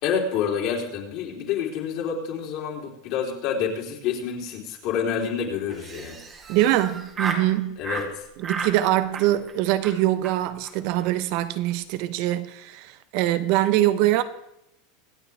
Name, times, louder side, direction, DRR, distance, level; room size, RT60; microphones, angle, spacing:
voice 1, 0.0-6.2 7.8-8.3, left 7 dB, 55° left, 3.5 m, -28 dB
Laughter, 5.7-7.5 7.8-8.1 8.4-8.8 9.1-9.5 9.8-10.0 10.2-10.3 10.6-10.7 11.0-11.1 11.4-11.7, right 4 dB, 25° right, 2.0 m, -33 dB
voice 2, 6.5-7.8 8.4-14.2, right 14 dB, 55° right, 1.0 m, -23 dB
25.5 x 8.6 x 3.5 m
supercardioid pair, 140°, 0 cm